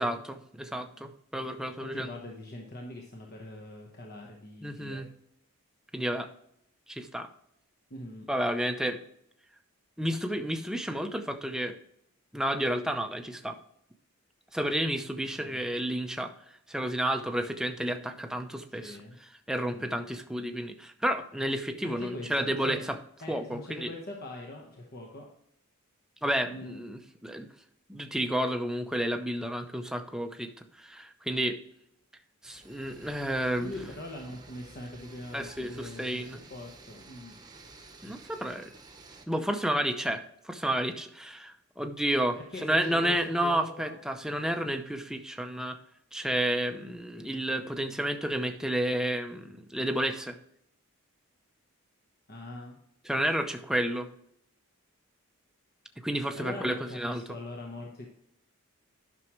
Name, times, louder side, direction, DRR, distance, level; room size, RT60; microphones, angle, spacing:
voice 1, 0.0-2.1 4.6-5.1 5.9-6.3 6.9-7.3 8.3-9.0 10.0-11.8 12.3-13.6 14.5-16.3 16.7-19.0 19.5-23.0 23.3-23.9 26.2-27.5 27.9-31.6 32.4-33.7 35.3-36.4 38.0-38.7 39.3-45.8 46.1-50.4 53.0-54.1 56.0-57.4, right 1 dB, 5° right, 6 dB, 0.6 m, -31 dB
voice 2, 1.9-5.0 7.9-8.3 15.4-15.7 18.8-19.2 19.6-19.9 21.8-22.8 23.2-25.3 26.5-26.8 33.6-37.4 42.4-44.0 52.3-52.8 56.3-58.1, left 1 dB, 45° left, 0 dB, 1.1 m, -42 dB
sound 1, 32.4-39.2, right 3 dB, 20° right, 1.0 m, -52 dB
11.0 x 6.2 x 3.1 m, 0.74 s
head